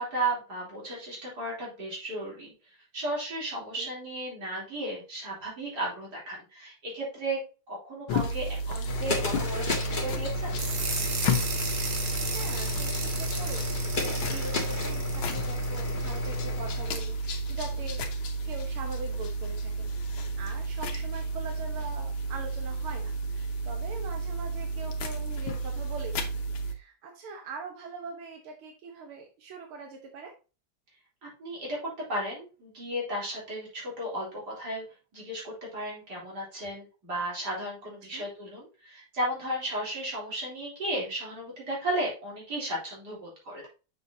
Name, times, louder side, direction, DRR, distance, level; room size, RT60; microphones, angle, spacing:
voice 1, 0.0-7.4 7.7-10.6 31.2-34.8 35.1-43.7, right 1 dB, 50° right, -4 dB, 4.0 m, -34 dB
voice 2, 3.6-3.9 11.9-18.1 18.4-30.3 38.1-38.2, right 4 dB, 90° right, 3 dB, 2.0 m, -43 dB
sound 1, 8.1-26.7, right 1 dB, 70° left, 1.8 m, -32 dB
sound 2, 8.9-17.0, left 5 dB, 25° left, 1.6 m, -34 dB
sound 3, 10.6-16.4, right 5 dB, 65° right, 2.1 m, -36 dB
6.8 x 6.6 x 2.8 m, 0.32 s
omnidirectional pair, 2.3 m